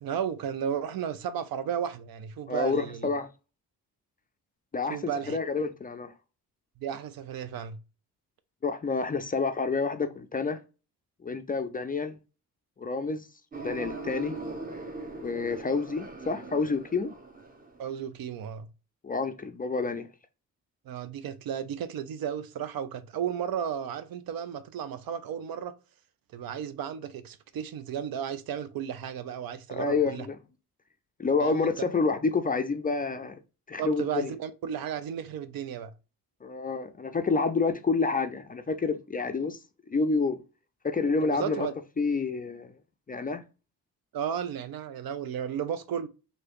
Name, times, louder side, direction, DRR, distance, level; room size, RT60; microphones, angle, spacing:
voice 1, 0.0-3.1 4.9-5.4 6.8-7.8 17.8-18.7 20.9-25.8 26.3-30.3 31.4-31.7 33.8-35.9 41.2-41.7 44.1-46.1, right 8 dB, 60° right, 0.5 m, -34 dB
voice 2, 2.5-3.3 4.7-5.0 5.3-6.1 8.6-10.6 11.2-12.2 12.8-13.3 13.6-14.3 15.2-17.1 19.0-20.1 29.7-30.4 31.2-33.4 33.7-34.3 36.4-39.6 39.9-40.4 40.8-41.7 42.0-42.7 43.1-43.4, left 4 dB, 20° left, 0.4 m, -28 dB
sound 1, 13.5-17.9, right 3 dB, 20° right, 0.9 m, -40 dB
3.1 x 2.7 x 3.0 m
supercardioid pair, 50°, 41 cm